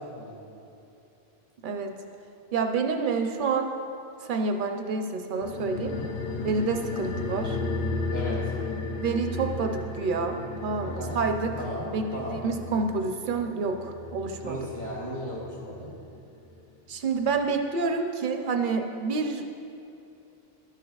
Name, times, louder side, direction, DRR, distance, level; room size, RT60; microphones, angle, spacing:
voice 1, 2.5-3.7 4.2-5.9 6.4-7.6 9.0-11.5 11.8-14.6 16.9-19.5, right 4 dB, 60° right, 5 dB, 0.8 m, -28 dB
sound 1, 5.4-16.3 16.6-16.7, left 3 dB, 60° left, 0.7 m, -34 dB
voice 2, 5.8-6.5 8.1-8.4 10.8-11.2 11.5-12.4 14.4-15.9, equal, 85° left, -4 dB, 2.6 m, -36 dB
12.0 x 9.1 x 2.4 m, 2.7 s
omnidirectional pair, 1.0 m